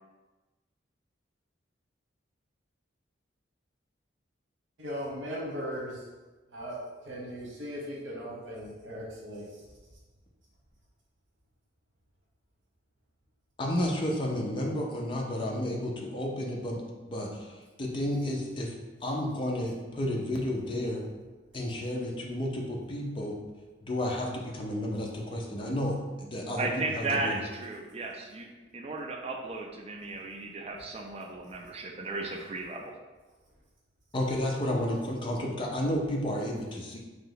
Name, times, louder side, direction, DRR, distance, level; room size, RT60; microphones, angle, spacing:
voice 1, 4.8-6.0 6.5-9.5, equal, 85° right, -4 dB, 1.0 m, -38 dB
voice 2, 13.6-16.8 17.1-17.5 17.8-18.7 19.0-21.0 21.5-23.3 23.8-27.4 34.1-37.0, left 1 dB, 25° left, -1 dB, 0.5 m, -31 dB
voice 3, 26.6-28.5 28.7-32.9, right 3 dB, 30° right, 2 dB, 0.4 m, -35 dB
3.2 x 2.8 x 3.9 m, 1.2 s
head